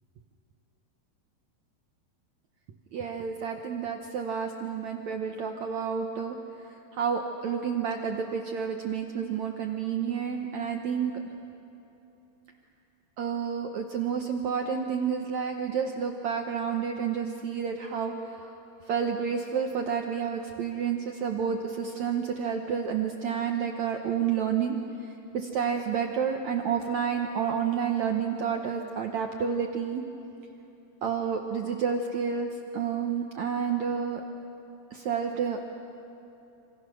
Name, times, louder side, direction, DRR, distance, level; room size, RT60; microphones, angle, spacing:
voice 1, 2.9-6.4 6.7-11.1 13.2-18.6 18.8-24.8 25.3-30.0 31.0-34.2 34.9-35.7, right 7 dB, 75° right, 3 dB, 1.7 m, -30 dB
27.0 x 26.5 x 6.3 m, 2.9 s
omnidirectional pair, 4.6 m